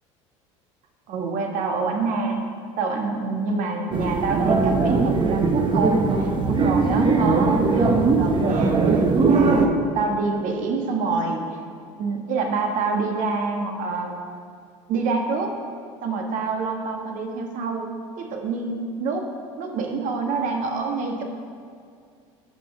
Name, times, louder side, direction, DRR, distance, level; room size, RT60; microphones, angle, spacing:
voice 1, 1.1-2.5 2.8-11.6 12.0-14.2 14.9-15.6 16.0-19.3 19.6-21.2, right 4 dB, 55° right, 3 dB, 1.4 m, -27 dB
sound 1, 3.9-9.7, right 4 dB, 30° right, 0.9 m, -20 dB
13.0 x 4.4 x 4.8 m, 2.3 s
hypercardioid pair, 75°, 16 cm